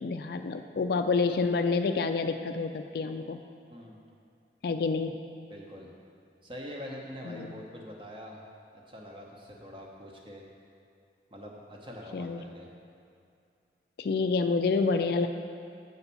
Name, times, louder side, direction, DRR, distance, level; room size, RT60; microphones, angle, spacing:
voice 1, 0.0-3.4 4.6-5.2 7.3-7.6 12.1-12.4 14.0-15.3, left 4 dB, 55° left, 6 dB, 0.3 m, -28 dB
voice 2, 3.7-4.0 5.5-5.9 6.4-8.4 8.9-10.5 11.3-12.7, equal, 30° right, -1 dB, 1.0 m, -44 dB
8.0 x 4.0 x 6.9 m, 2.5 s
head